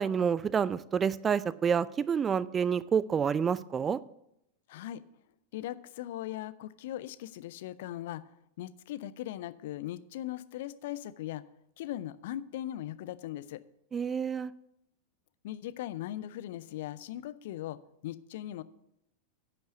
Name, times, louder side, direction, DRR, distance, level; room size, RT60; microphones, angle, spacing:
voice 1, 0.0-4.0 13.9-14.5, right 7 dB, 20° right, 19 dB, 0.3 m, -28 dB
voice 2, 4.7-5.0 5.5-8.3 8.6-11.5 11.8-13.6 15.4-18.6, left 13 dB, 55° left, 15 dB, 0.5 m, -39 dB
10.5 x 5.4 x 6.8 m, 0.81 s
figure-of-eight pair, 90°, 0 cm